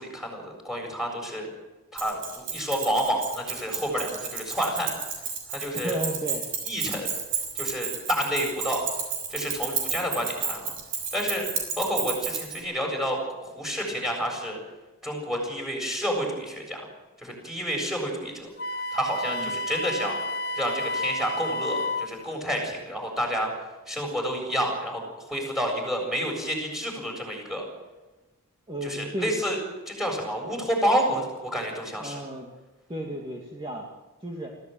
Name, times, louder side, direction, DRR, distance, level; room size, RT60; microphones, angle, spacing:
voice 1, 0.0-1.5 1.9-4.9 5.5-6.0 6.6-7.1 7.5-8.8 9.3-10.7 11.1-11.5 11.8-14.6 15.0-16.8 17.2-18.5 18.9-20.2 20.6-23.5 23.9-27.7 28.8-29.6 29.9-32.2, equal, ahead, 1 dB, 7.5 m, -29 dB
Keys jangling, 2.0-12.6, right 7 dB, 60° right, 6.6 m, -31 dB
voice 2, 5.7-6.5 19.3-19.5 28.7-29.3 31.9-32.5 32.9-33.9 34.2-34.6, right 1 dB, 20° right, 0 dB, 2.4 m, -34 dB
Wind instrument woodwind instrument, 18.6-22.1, left 1 dB, 50° left, 1.2 m, -30 dB
24.5 x 16.0 x 9.3 m, 1.1 s
head